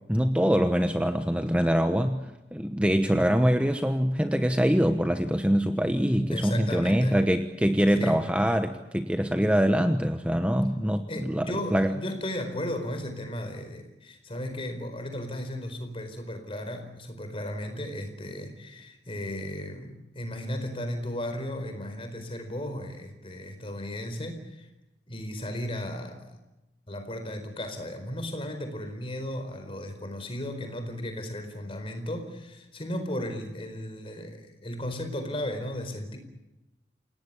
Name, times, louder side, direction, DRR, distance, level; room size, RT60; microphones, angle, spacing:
voice 1, 0.1-2.2 2.5-11.9, equal, 5° right, 7 dB, 1.0 m, -24 dB
voice 2, 6.3-7.2 7.9-8.3 11.1-24.7 25.1-26.4 26.9-36.2, left 1 dB, 30° left, 7 dB, 4.5 m, -35 dB
28.5 x 18.5 x 8.5 m, 0.99 s
head